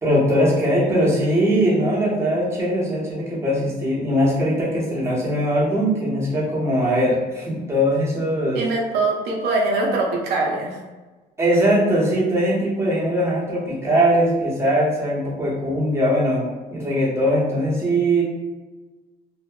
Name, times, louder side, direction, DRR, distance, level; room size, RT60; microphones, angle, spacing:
voice 1, 0.0-8.7 11.4-16.4 16.7-18.2, equal, 15° right, -6 dB, 0.9 m, -20 dB
voice 2, 8.5-10.8, right 2 dB, 75° right, -1 dB, 0.5 m, -22 dB
2.7 x 2.1 x 2.2 m, 1.2 s
cardioid pair, 110°, 17 cm